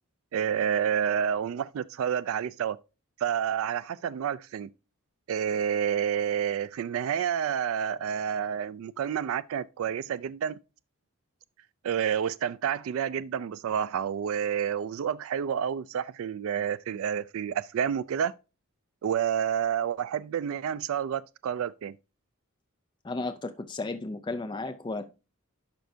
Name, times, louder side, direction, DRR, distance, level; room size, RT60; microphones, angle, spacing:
voice 1, 0.3-2.8 3.2-4.7 5.3-10.6 11.8-18.3 19.0-21.9, right 8 dB, 75° right, 0.3 m, -29 dB
voice 2, 23.0-25.1, left 2 dB, 20° left, 0.4 m, -34 dB
11.5 x 4.5 x 2.6 m
head